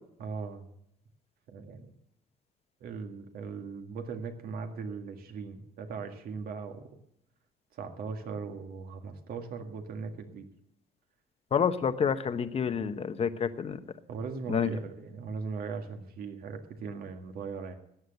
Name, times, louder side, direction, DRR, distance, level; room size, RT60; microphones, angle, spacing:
voice 1, 0.2-0.7 1.5-1.9 2.8-6.9 7.8-10.5 14.1-17.7, right 5 dB, 65° right, 5 dB, 1.9 m, -39 dB
voice 2, 11.5-13.8 14.5-14.7, left 7 dB, 35° left, 10 dB, 1.0 m, -28 dB
14.5 x 9.6 x 6.6 m, 0.76 s
cardioid pair, 110°, 17 cm